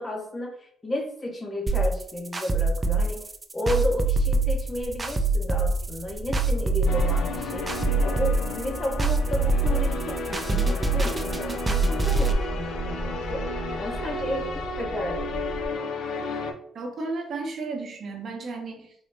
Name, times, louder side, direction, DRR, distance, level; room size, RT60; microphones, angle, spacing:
voice 1, 0.0-3.2 3.5-7.7 8.0-13.5 13.8-15.4, left 1 dB, 25° left, 1 dB, 0.9 m, -32 dB
sound 1, 1.7-12.3, right 3 dB, 25° right, 0.4 m, -24 dB
sound 2, 4.1-15.7, right 1 dB, ahead, 1.0 m, -37 dB
sound 3, 6.9-16.5, left 2 dB, 80° left, 0.5 m, -33 dB
voice 2, 16.7-18.9, right 3 dB, 55° right, 1 dB, 0.7 m, -33 dB
3.9 x 2.0 x 3.2 m, 0.67 s
cardioid pair, 90°, 0 cm